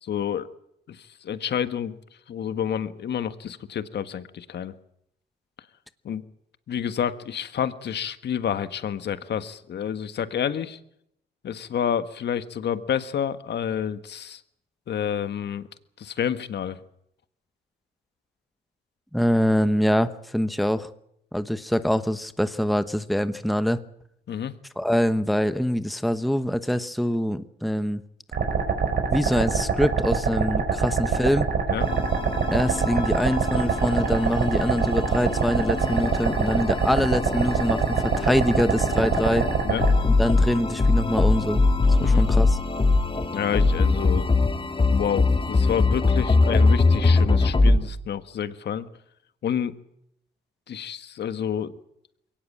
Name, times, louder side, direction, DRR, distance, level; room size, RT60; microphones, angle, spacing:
voice 1, 0.0-0.5 0.9-2.0 2.3-4.8 6.0-6.2 6.7-10.8 11.4-14.4 14.9-15.7 16.0-16.8 24.3-24.5 31.7-31.9 39.6-39.8 42.0-42.2 43.3-44.3 44.9-48.9 49.4-49.8 50.7-51.7, left 8 dB, 60° left, 11 dB, 1.5 m, -29 dB
voice 2, 19.1-20.9 21.3-23.8 24.8-28.0 29.1-31.5 32.5-39.5 40.1-41.6 41.9-42.6, equal, ahead, 12 dB, 1.1 m, -24 dB
sound 1, 28.3-39.9, right 5 dB, 50° right, 5.5 m, -24 dB
sound 2, 31.8-47.8, left 3 dB, 25° left, 3.2 m, -22 dB
22.5 x 18.0 x 8.7 m, 0.76 s
cardioid pair, 90°, 20 cm